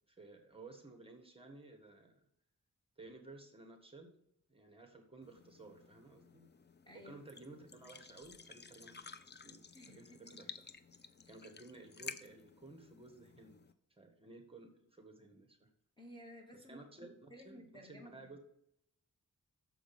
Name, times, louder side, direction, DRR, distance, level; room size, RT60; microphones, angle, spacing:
voice 1, 0.1-2.2 3.0-4.1 4.5-6.4 6.9-9.6 9.8-10.6 11.3-13.6 14.0-15.7 16.5-18.4, right 3 dB, 15° right, 3 dB, 1.6 m, -55 dB
sound 1, 5.2-13.7, left 5 dB, 30° left, 0.5 m, -54 dB
voice 2, 6.8-7.2 9.7-10.4 16.0-16.8 17.3-18.4, equal, 15° left, 1 dB, 1.4 m, -55 dB
7.1 x 5.1 x 7.0 m, 0.74 s
wide cardioid pair, 120°, 33 cm